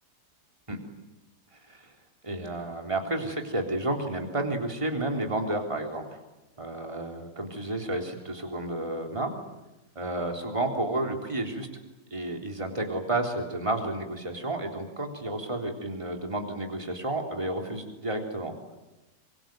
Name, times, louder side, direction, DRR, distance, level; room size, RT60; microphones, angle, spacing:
voice 1, 2.2-6.2 6.6-9.3 10.0-11.7 12.1-18.5, right 2 dB, 15° right, 2 dB, 3.7 m, -31 dB
26.0 x 23.5 x 9.3 m, 1.0 s
omnidirectional pair, 1.9 m